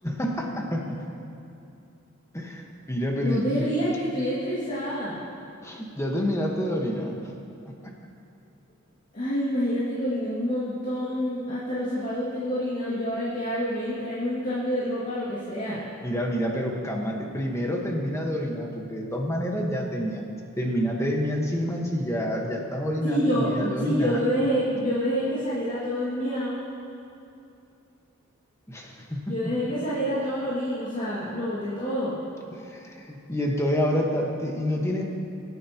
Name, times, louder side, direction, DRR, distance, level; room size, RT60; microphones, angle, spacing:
voice 1, 0.0-1.0 2.3-3.7 5.6-7.2 7.8-7.9 16.0-20.2 20.6-24.2 28.7-29.5 32.5-35.0, equal, 15° left, 0 dB, 1.3 m, -28 dB
voice 2, 3.2-5.2 9.1-15.8 23.0-26.6 29.3-32.2, equal, 40° left, -10 dB, 2.2 m, -27 dB
24.0 x 9.4 x 2.9 m, 2.7 s
head